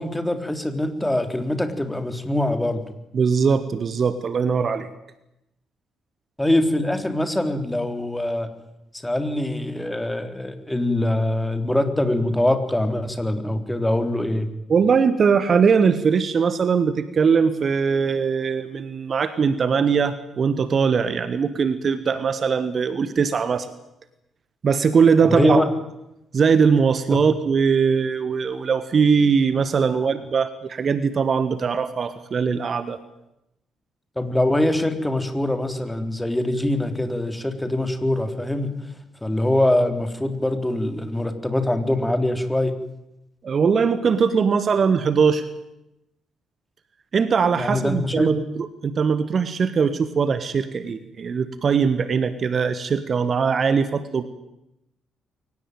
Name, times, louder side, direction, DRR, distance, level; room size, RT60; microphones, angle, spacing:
voice 1, 0.0-2.8 6.4-8.5 9.0-14.5 25.2-25.7 27.1-27.2 29.8-30.1 34.2-38.7 39.2-42.7 47.6-48.3, left 1 dB, 10° left, 7 dB, 3.6 m, -23 dB
voice 2, 3.1-4.9 14.7-23.7 24.6-25.6 26.3-33.0 43.4-45.5 47.1-54.2, right 6 dB, 45° right, 14 dB, 1.4 m, -21 dB
23.5 x 18.5 x 9.3 m, 0.88 s
figure-of-eight pair, 40°, 0 cm